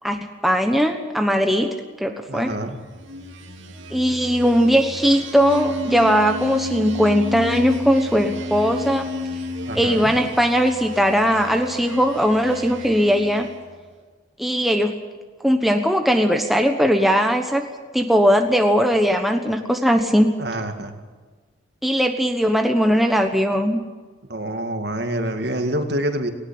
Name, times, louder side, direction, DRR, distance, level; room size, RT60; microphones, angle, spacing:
voice 1, 0.0-2.5 3.9-9.1 9.7-13.5 14.4-15.0 15.4-17.7 17.9-20.3 21.8-23.8, equal, ahead, 4 dB, 1.1 m, -19 dB
voice 2, 2.3-2.8 9.7-10.1 20.4-20.9 24.3-26.3, right 1 dB, 55° right, 6 dB, 2.1 m, -26 dB
sound 1, 2.8-13.7, equal, 80° right, 2.7 m, -32 dB
19.0 x 17.5 x 8.8 m, 1.4 s
head